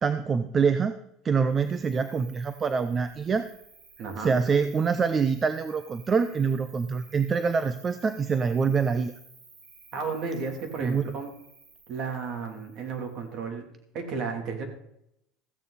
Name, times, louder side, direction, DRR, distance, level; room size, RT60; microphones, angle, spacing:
voice 1, 0.0-0.9 1.2-3.5 4.2-9.1 10.8-11.1, right 5 dB, 25° right, 11 dB, 0.6 m, -25 dB
Cricket, 1.4-13.4, right 4 dB, 65° right, 5.7 m, -54 dB
voice 2, 4.0-4.4 9.9-11.3 11.9-13.7 13.9-14.6, right 5 dB, 45° right, 3 dB, 3.1 m, -33 dB
15.0 x 9.0 x 4.2 m, 0.77 s
cardioid pair, 140°, 0 cm